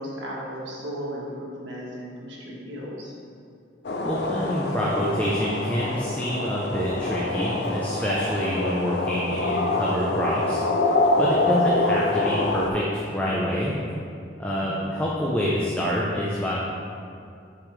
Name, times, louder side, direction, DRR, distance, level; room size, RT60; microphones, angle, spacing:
voice 1, 0.0-3.1 14.5-14.9, equal, 85° right, -4 dB, 1.4 m, -35 dB
sound 1, 3.8-12.7, left 2 dB, 65° left, 0.5 m, -25 dB
voice 2, 4.0-10.6 11.2-13.7 14.4-16.5, equal, 10° left, -6 dB, 0.6 m, -26 dB
7.1 x 5.0 x 3.2 m, 2.4 s
head